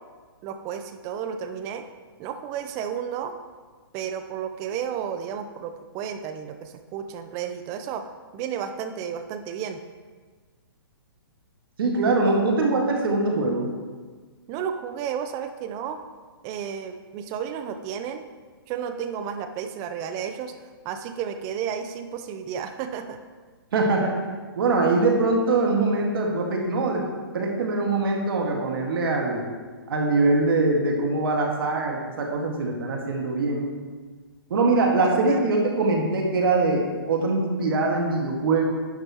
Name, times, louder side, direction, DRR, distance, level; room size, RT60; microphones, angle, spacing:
voice 1, 0.4-1.8 2.2-3.3 3.9-8.0 8.3-9.8 14.5-16.0 16.4-18.2 18.7-20.5 20.8-23.2 35.0-35.5, right 8 dB, 25° right, 8 dB, 0.6 m, -32 dB
voice 2, 11.8-13.7 23.7-24.2 24.6-27.1 27.3-29.4 29.9-33.7 34.5-38.6, right 3 dB, 65° right, 1 dB, 1.8 m, -23 dB
10.5 x 6.9 x 3.0 m, 1.5 s
hypercardioid pair, 140°, 13 cm